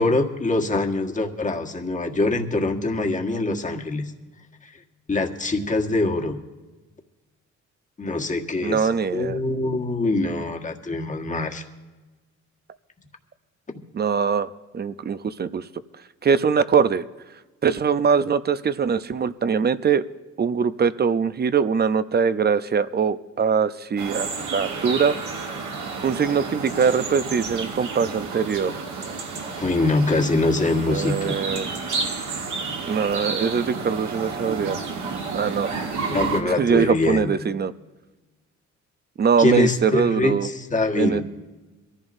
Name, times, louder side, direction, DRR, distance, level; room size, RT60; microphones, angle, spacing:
voice 1, 0.0-4.0 5.1-6.4 8.0-11.6 29.5-31.4 36.1-37.3 39.4-41.2, left 2 dB, 25° left, 2 dB, 1.6 m, -24 dB
voice 2, 8.6-9.4 13.9-15.7 16.2-17.0 17.6-20.0 20.4-25.2 26.0-28.9 30.9-31.7 32.9-34.8 35.3-35.7 36.5-37.7 39.2-40.5 41.0-41.2, right 6 dB, 35° right, 14 dB, 0.6 m, -22 dB
pajaros gallo trueno, 24.0-36.4, right 4 dB, 75° right, 2.2 m, -31 dB
23.0 x 14.5 x 2.7 m, 1.2 s
cardioid pair, 90°, 30 cm